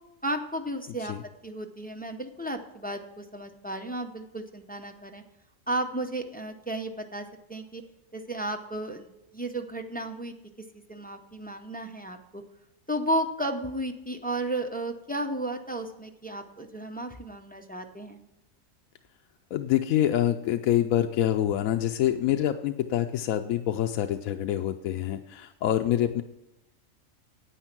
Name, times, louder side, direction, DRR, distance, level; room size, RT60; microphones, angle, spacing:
voice 1, 0.2-1.1 1.4-5.2 5.7-7.8 8.1-10.3 10.9-12.4 12.9-18.2, right 1 dB, 10° left, 4 dB, 0.5 m, -33 dB
voice 2, 19.5-26.2, left 11 dB, 80° left, 6 dB, 1.0 m, -26 dB
10.0 x 8.8 x 5.9 m, 0.91 s
omnidirectional pair, 1.4 m